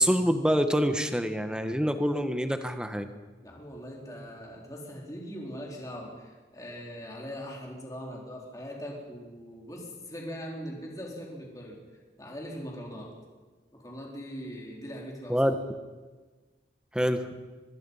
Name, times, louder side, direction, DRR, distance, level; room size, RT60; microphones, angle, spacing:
voice 1, 0.0-3.1 15.3-15.5 16.9-17.3, equal, 5° right, 8 dB, 1.2 m, -26 dB
voice 2, 3.4-11.8 12.2-13.1 13.7-15.4, equal, 20° left, -2 dB, 4.3 m, -41 dB
24.5 x 21.5 x 5.7 m, 1.3 s
head